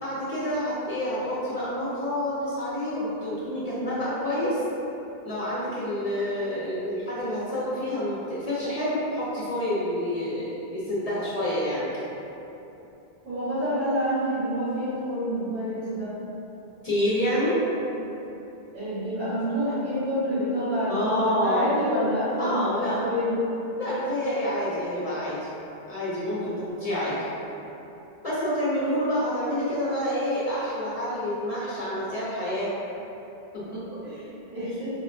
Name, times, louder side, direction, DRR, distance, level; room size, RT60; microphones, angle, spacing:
voice 1, 0.0-4.6 5.2-12.1 16.8-17.6 20.9-21.7 22.4-23.0 23.8-25.4 25.9-27.2 28.2-32.7 33.5-34.0, left 1 dB, 45° left, -9 dB, 0.6 m, -28 dB
voice 2, 13.2-16.1 18.7-23.3 33.7-33.8 34.0-35.0, equal, 80° right, -14 dB, 2.0 m, -28 dB
4.5 x 2.1 x 2.6 m, 3.0 s
omnidirectional pair, 1.0 m